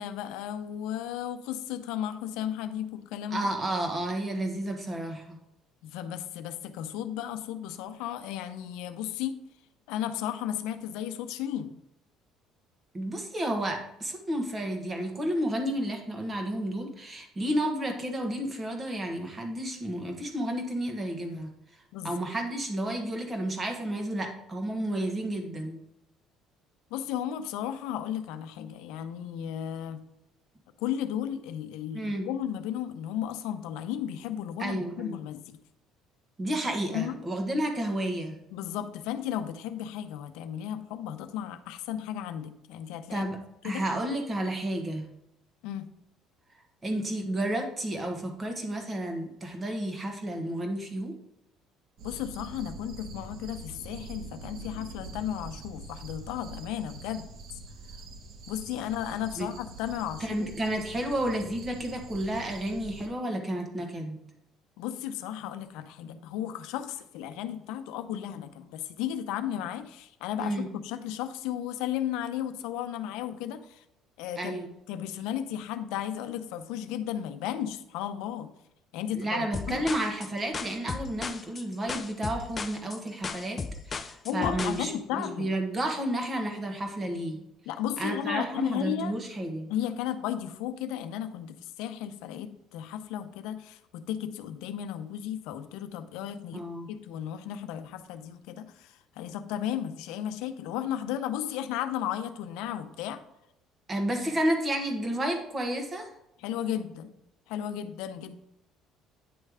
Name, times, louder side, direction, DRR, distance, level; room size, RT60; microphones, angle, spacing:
voice 1, 0.0-3.5 5.8-9.4 9.9-11.7 21.9-22.2 26.9-30.0 30.8-35.6 36.9-37.2 38.5-43.3 43.6-43.8 45.6-45.9 52.0-57.3 57.5-57.6 58.5-60.5 64.8-73.8 74.2-74.6 74.9-78.5 78.9-79.9 84.2-85.5 87.7-89.1 89.7-103.2 106.4-107.1 107.5-108.4, left 10 dB, 85° left, 9 dB, 0.6 m, -34 dB
voice 2, 3.3-5.4 12.9-21.5 22.0-25.8 31.9-32.3 34.6-35.2 36.4-38.4 43.1-45.0 46.8-51.1 59.4-59.5 60.2-64.2 70.4-70.7 74.4-74.7 79.1-87.4 88.0-89.7 96.5-96.9 103.9-106.1, right 1 dB, 25° right, 3 dB, 1.4 m, -31 dB
sound 1, 52.0-63.1, right 2 dB, 60° right, 1.0 m, -44 dB
sound 2, 79.5-84.8, left 5 dB, 30° left, 0.5 m, -36 dB
9.5 x 3.3 x 4.8 m, 0.84 s
cardioid pair, 125°, 0 cm